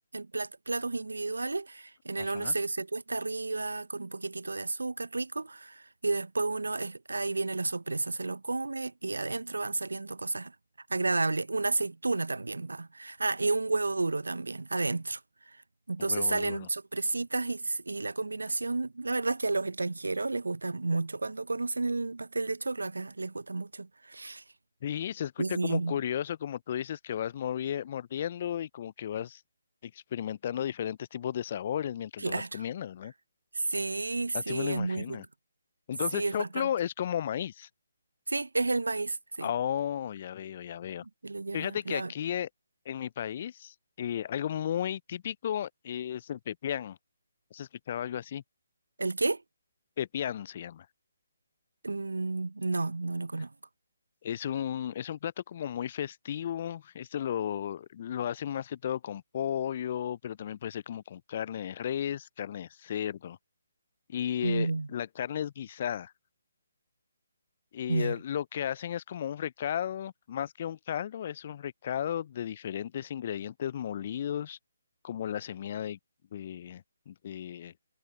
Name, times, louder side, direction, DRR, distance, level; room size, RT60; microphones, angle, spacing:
voice 1, 0.1-10.6 10.9-15.6 15.9-24.4 25.4-26.0 32.2-32.6 33.5-35.3 36.1-36.7 38.3-39.5 41.2-42.1 49.0-49.4 51.8-53.5 64.4-64.9 67.9-68.2, right 3 dB, 75° right, 0.8 m, -31 dB
voice 2, 2.1-2.5 16.0-16.7 24.8-29.4 29.8-33.1 34.3-35.2 35.9-37.7 39.4-41.0 41.5-42.5 42.9-47.0 47.5-48.4 50.0-50.9 54.2-63.4 64.1-66.1 67.7-74.6 75.0-76.0 76.3-77.7, left 10 dB, 40° left, 0.5 m, -34 dB
figure-of-eight pair, 140°, 0 cm